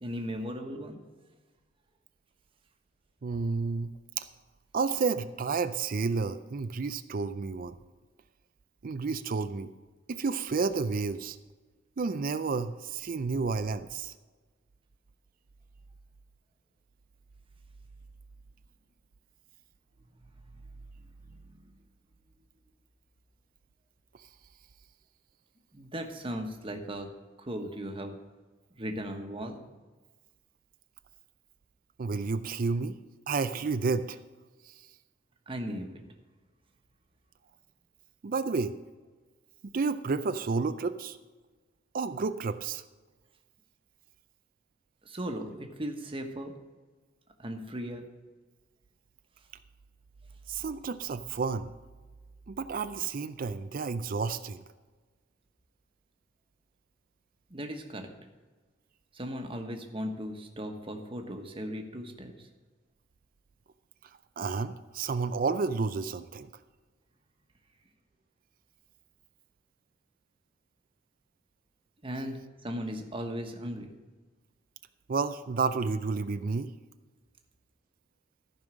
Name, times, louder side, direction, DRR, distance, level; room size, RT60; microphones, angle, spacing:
voice 1, 0.0-1.0 21.3-21.4 25.7-27.1 27.4-28.2 28.7-29.6 35.5-35.9 45.0-46.5 47.4-48.1 57.5-58.1 59.1-62.5 72.0-73.9, equal, 30° right, 4 dB, 1.2 m, -37 dB
voice 2, 3.2-4.2 4.7-7.7 8.8-9.7 10.1-11.4 12.0-14.1 32.0-33.0 33.3-34.2 34.7-34.8 38.2-38.7 39.6-41.2 41.9-42.8 50.5-51.7 52.5-54.6 64.4-66.5 75.1-76.7, right 4 dB, 45° right, 11 dB, 0.4 m, -31 dB
14.0 x 5.5 x 6.3 m, 1.3 s
head